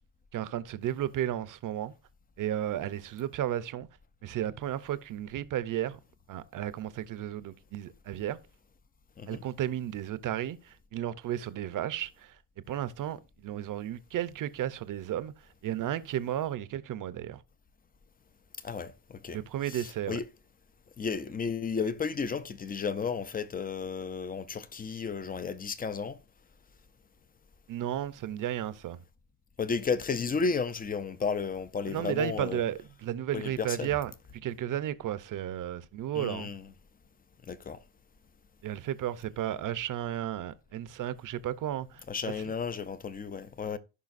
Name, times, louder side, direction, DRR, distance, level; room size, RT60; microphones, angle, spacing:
voice 1, 0.3-1.9 2.4-3.9 4.2-6.0 6.3-8.4 9.3-12.4 12.7-17.4 19.3-20.2 27.7-29.0 31.9-36.5 38.6-42.3, right 11 dB, 40° right, 0.6 m, -33 dB
voice 2, 18.6-19.4 19.7-20.2 21.0-26.2 29.6-32.6 33.3-33.9 36.1-36.7 37.5-37.8 42.1-43.8, left 5 dB, 20° left, 0.3 m, -33 dB
15.0 x 5.6 x 2.5 m
cardioid pair, 155°, 47 cm